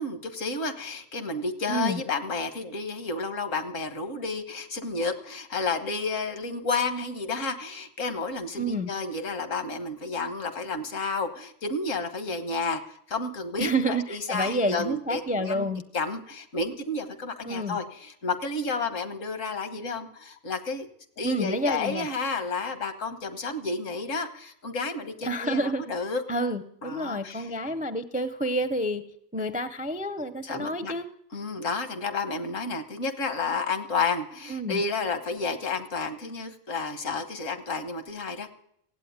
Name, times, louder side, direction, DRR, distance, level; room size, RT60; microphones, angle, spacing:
voice 1, 0.0-15.7 15.9-20.9 21.2-26.2 26.8-27.5 30.4-30.9 31.3-38.5, left 3 dB, 80° left, 9 dB, 1.7 m, -31 dB
voice 2, 1.7-2.0 8.6-8.9 13.6-15.8 17.4-17.8 21.2-22.1 25.2-25.8 26.3-29.0 29.3-31.1 34.5-34.8, right 1 dB, 10° right, 11 dB, 0.4 m, -29 dB
16.0 x 8.6 x 9.4 m, 0.71 s
omnidirectional pair, 1.3 m